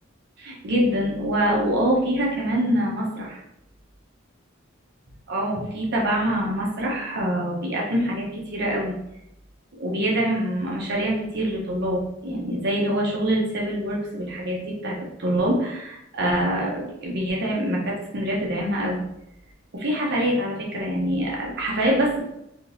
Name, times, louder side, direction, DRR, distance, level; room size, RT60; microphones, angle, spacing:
voice 1, 0.4-3.4 5.3-9.0 9.8-19.0 19.7-22.2, right 1 dB, 55° right, -3 dB, 0.8 m, -25 dB
3.6 x 2.7 x 2.6 m, 0.82 s
head